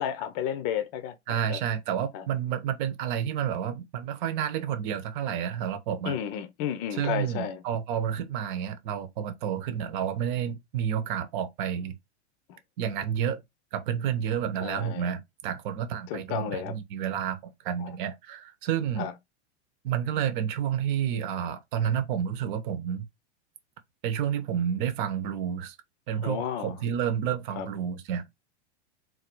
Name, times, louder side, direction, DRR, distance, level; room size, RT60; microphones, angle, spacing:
voice 1, 0.0-1.2 1.5-1.6 2.1-2.2 6.1-7.6 12.5-12.6 14.6-15.1 16.1-16.8 19.0-19.1 26.2-26.7 27.6-27.7, left 9 dB, 35° left, 0.7 m, -32 dB
voice 2, 1.3-6.1 6.9-12.0 12.8-13.4 13.7-19.1 19.8-23.0 24.0-25.8 26.1-28.3, right 9 dB, 45° right, 0.9 m, -30 dB
4.0 x 2.6 x 4.5 m
supercardioid pair, 150°, 34 cm